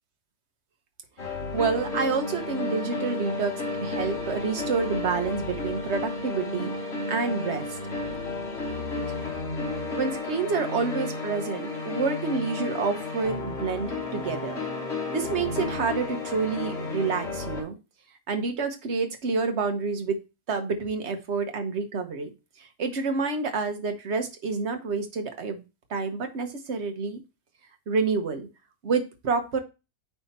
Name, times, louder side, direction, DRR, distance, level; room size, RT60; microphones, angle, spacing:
sound 1, 1.2-17.6, left 3 dB, 45° left, 1.9 m, -32 dB
voice 1, 1.2-3.5 3.8-7.8 8.9-9.4 9.7-14.6 15.1-17.8 18.3-20.2 20.5-25.6 25.9-27.2 27.9-28.5 28.8-29.6, right 4 dB, 50° right, 7 dB, 1.3 m, -28 dB
9.4 x 3.5 x 4.1 m, 0.29 s
omnidirectional pair, 1.7 m